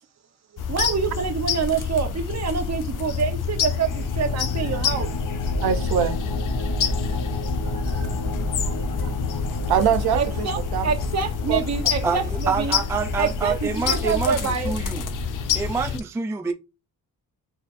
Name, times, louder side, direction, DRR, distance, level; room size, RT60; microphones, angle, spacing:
sound 1, 0.6-16.0, left 6 dB, 55° left, 0.6 m, -28 dB
voice 1, 0.7-5.1 10.1-10.6 10.8-12.8 13.2-14.7, right 6 dB, 40° right, 1.0 m, -26 dB
sound 2, 3.1-15.8, left 1 dB, 75° left, 1.2 m, -32 dB
voice 2, 5.6-6.2 7.9-8.2 8.6-8.8 9.0-9.4 9.7-10.5 10.7-10.9 11.5-11.6, right 8 dB, 70° right, 0.7 m, -24 dB
voice 3, 12.0-15.0 15.5-16.5, right 5 dB, 5° right, 0.3 m, -26 dB
4.4 x 4.0 x 2.5 m
wide cardioid pair, 150°, 39 cm